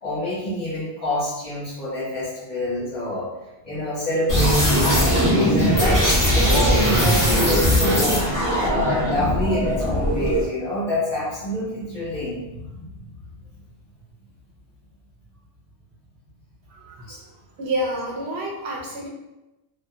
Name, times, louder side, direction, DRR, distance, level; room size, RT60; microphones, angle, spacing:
voice 1, 0.0-3.3 3.6-8.3 8.6-13.1 17.1-17.2, left 1 dB, 35° left, -8 dB, 1.2 m, -27 dB
sound 1, 4.3-10.5, equal, 20° left, 0.8 m, -19 dB
voice 2, 16.7-19.1, right 1 dB, 90° right, -1 dB, 0.9 m, -29 dB
2.6 x 2.4 x 2.4 m, 0.99 s
omnidirectional pair, 1.1 m